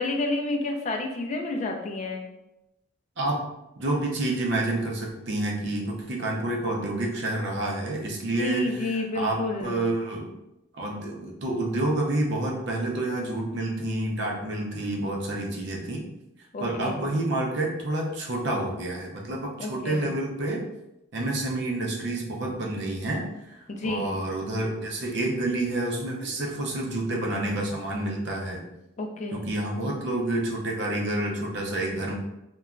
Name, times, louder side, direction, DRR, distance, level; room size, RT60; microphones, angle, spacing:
voice 1, 0.0-2.2 8.4-9.8 16.5-17.0 19.6-20.0 23.7-24.1 29.0-29.4, left 2 dB, 35° left, 2 dB, 0.3 m, -30 dB
voice 2, 3.8-10.3 10.7-16.1 16.6-20.7 21.1-28.6 29.3-32.1, right 1 dB, 55° right, -1 dB, 0.5 m, -29 dB
2.9 x 2.2 x 2.4 m, 0.91 s
head